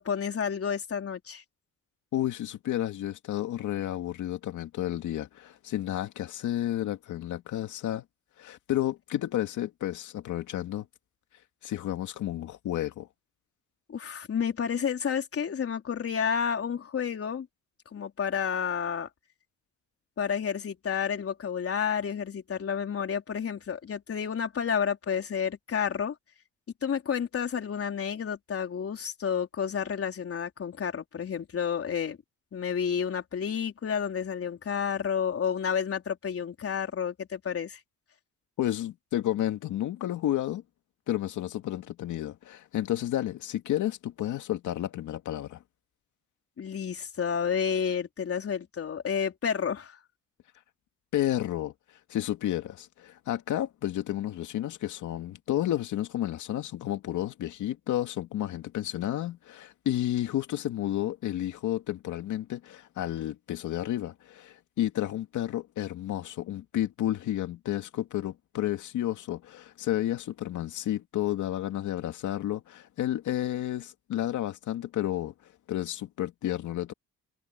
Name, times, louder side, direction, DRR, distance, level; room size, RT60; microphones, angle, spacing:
voice 1, 0.0-1.4 13.9-17.5 17.9-19.1 20.2-26.2 26.8-32.2 32.5-37.8 46.6-50.0, left 7 dB, 50° left, 4.2 m, -30 dB
voice 2, 2.1-8.0 8.4-10.9 11.6-13.1 38.6-40.6 41.1-45.6 51.1-51.7 52.1-75.3 75.7-76.9, left 13 dB, 80° left, 2.3 m, -31 dB
cardioid pair, 90°, 30 cm